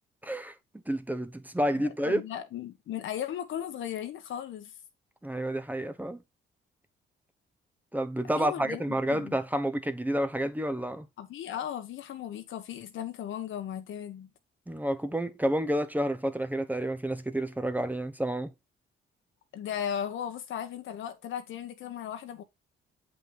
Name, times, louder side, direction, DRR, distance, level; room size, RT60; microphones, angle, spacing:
voice 1, 0.2-2.2 5.2-6.2 7.9-11.1 14.7-18.5, right 1 dB, 10° right, 0.9 m, -30 dB
voice 2, 1.8-4.7 8.4-8.8 9.1-9.4 11.2-14.3 19.5-22.4, left 9 dB, 75° left, 1.3 m, -36 dB
7.8 x 5.4 x 3.4 m
cardioid pair, 90°, 20 cm